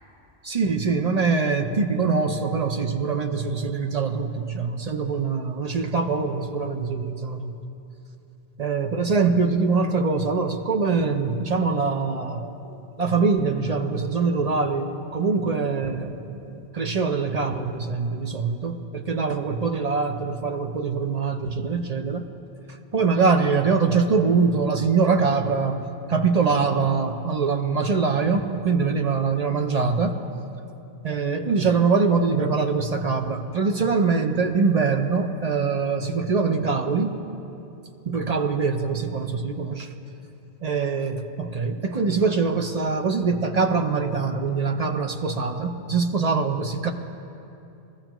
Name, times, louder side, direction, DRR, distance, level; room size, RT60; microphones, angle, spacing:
voice 1, 0.4-7.6 8.6-22.3 22.7-30.2 31.0-37.1 38.0-39.9 40.6-46.9, right 4 dB, 45° right, 5 dB, 0.7 m, -23 dB
20.5 x 14.0 x 3.0 m, 2.8 s
omnidirectional pair, 1.0 m